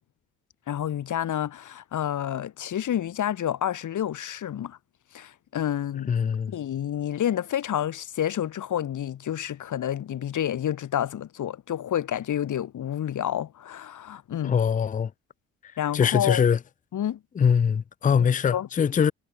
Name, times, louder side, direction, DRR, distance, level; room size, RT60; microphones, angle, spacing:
voice 1, 0.7-4.8 5.1-6.1 6.5-14.6 15.8-16.5 16.9-17.2 18.2-18.3 18.5-18.7, left 10 dB, 55° left, 3.3 m, -29 dB
voice 2, 6.1-6.5 14.4-15.1 15.9-16.6 17.4-19.1, left 7 dB, 20° left, 0.6 m, -22 dB
hypercardioid pair, 55°, 36 cm